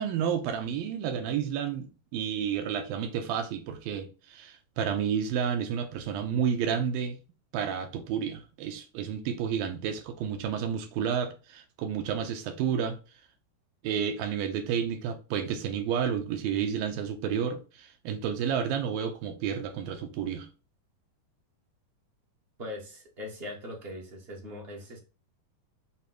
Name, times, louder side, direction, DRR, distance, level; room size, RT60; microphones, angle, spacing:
voice 1, 0.0-7.2 7.5-13.0 13.8-20.5, right 8 dB, 75° right, 2.5 m, -31 dB
voice 2, 22.6-25.0, left 1 dB, 50° right, 0.6 m, -40 dB
7.0 x 3.1 x 6.0 m
omnidirectional pair, 4.4 m